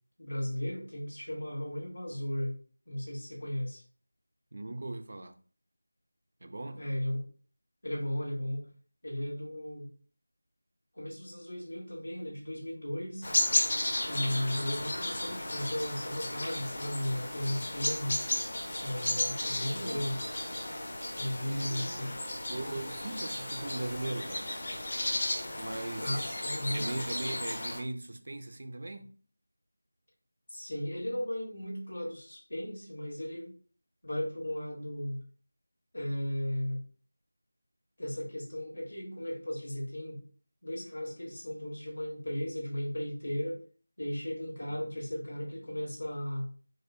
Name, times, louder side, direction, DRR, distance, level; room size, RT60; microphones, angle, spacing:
voice 1, 0.2-2.5 2.9-3.8 6.7-7.2 7.8-8.6 9.0-9.9 10.9-13.3 14.0-18.2 18.8-20.2 21.2-22.1 22.6-22.7 26.0-26.9 30.5-33.5 34.0-35.2 35.9-36.8 38.0-40.2 40.6-43.6 44.0-46.5, left 1 dB, 70° left, 1.7 m, -35 dB
voice 2, 4.5-5.4 6.4-6.9 19.7-20.0 21.5-22.2 22.5-24.5 25.6-26.4 26.7-29.2 44.6-44.9, right 2 dB, 50° right, 0.4 m, -39 dB
sound 1, 13.2-27.8, left 1 dB, 45° left, 0.8 m, -34 dB
4.6 x 2.1 x 2.7 m
figure-of-eight pair, 175°, 0 cm